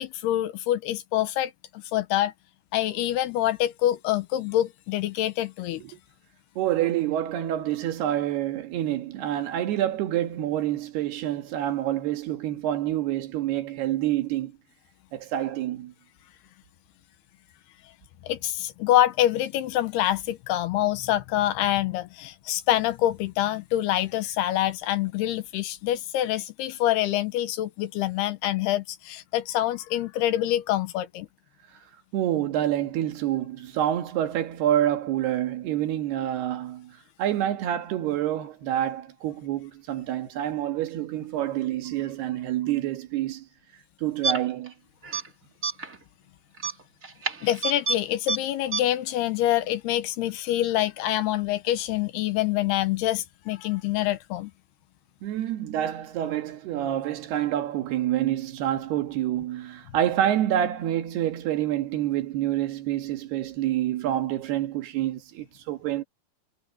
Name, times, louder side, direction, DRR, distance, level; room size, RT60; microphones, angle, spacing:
voice 1, 0.0-2.3 2.7-5.8 18.2-31.3 47.4-54.5, left 13 dB, 80° left, 2.9 m, -26 dB
voice 2, 6.6-14.5 15.1-15.9 32.1-43.5 44.0-44.7 55.2-66.0, right 12 dB, 70° right, 3.6 m, -27 dB
sound 1, 44.2-44.7 45.0-45.3 45.6-46.0 46.6-48.0 48.3-48.4 48.7-48.8, right 4 dB, 45° right, 1.0 m, -28 dB
omnidirectional pair, 4.9 m